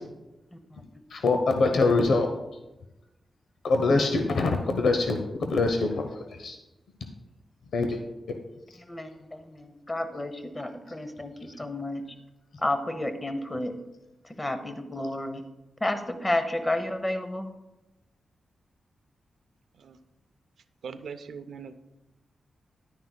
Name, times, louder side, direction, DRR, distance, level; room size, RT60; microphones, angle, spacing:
voice 1, 1.1-2.3 3.6-6.1 6.4-6.6 7.7-8.0 8.3-8.4, left 3 dB, 85° left, 5 dB, 0.7 m, -24 dB
voice 2, 9.5-11.3 11.6-12.0 12.6-13.8 14.4-15.4 15.8-17.5, left 1 dB, 15° left, 8 dB, 0.8 m, -30 dB
voice 3, 20.8-21.8, right 6 dB, 80° right, 10 dB, 0.5 m, -39 dB
10.5 x 9.5 x 2.2 m, 1.0 s
wide cardioid pair, 125°, 0 cm